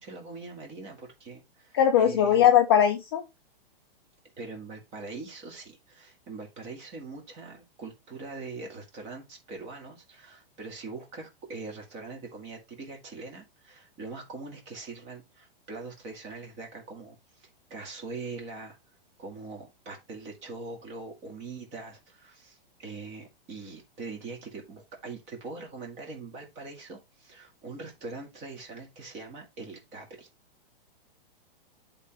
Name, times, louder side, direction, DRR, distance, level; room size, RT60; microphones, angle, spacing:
voice 1, 0.0-2.5 4.4-30.3, right 3 dB, 20° right, 2.0 m, -42 dB
voice 2, 1.7-3.3, left 9 dB, 25° left, 0.4 m, -20 dB
11.5 x 3.8 x 2.9 m
hypercardioid pair, 170°, 29 cm